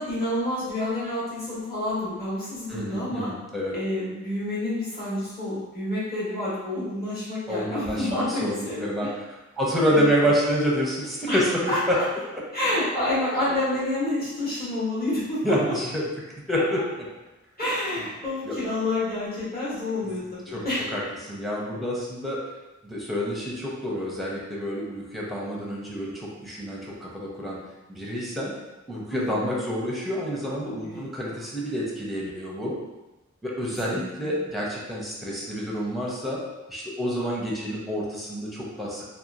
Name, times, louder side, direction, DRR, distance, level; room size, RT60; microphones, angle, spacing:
voice 1, 0.0-3.3 3.7-9.1 9.9-10.2 11.3-11.4 11.7-12.0 12.5-15.6 16.5-16.6 17.6-20.9 29.1-29.4 30.8-31.5 33.9-34.3, left 1 dB, 30° left, -10 dB, 1.3 m, -29 dB
voice 2, 2.7-3.8 7.5-9.1 9.6-12.0 12.3-12.4 15.4-16.0 16.5-16.8 18.4-18.6 20.0-20.6 20.9-22.4 22.8-27.6 27.9-28.5 28.9-32.8 33.4-36.4 36.7-39.0, equal, ahead, -4 dB, 0.7 m, -28 dB
2.8 x 2.3 x 2.5 m, 1.1 s
wide cardioid pair, 45°, 30 cm